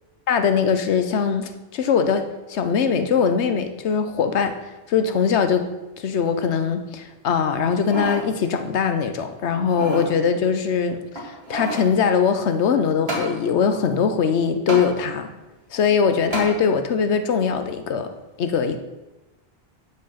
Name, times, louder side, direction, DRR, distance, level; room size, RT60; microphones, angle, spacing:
voice 1, 0.3-4.6 4.9-5.7 6.0-15.3 15.7-18.1 18.4-18.8, left 6 dB, 85° left, 8 dB, 1.1 m, -21 dB
sound 1, 7.6-8.3 8.7-8.8 9.5-10.1 11.1-11.9 13.1-13.3 14.7-14.9 16.3-16.5 17.1-17.2, right 1 dB, 65° right, 2.3 m, -29 dB
9.5 x 5.3 x 5.7 m, 1.1 s
omnidirectional pair, 1.1 m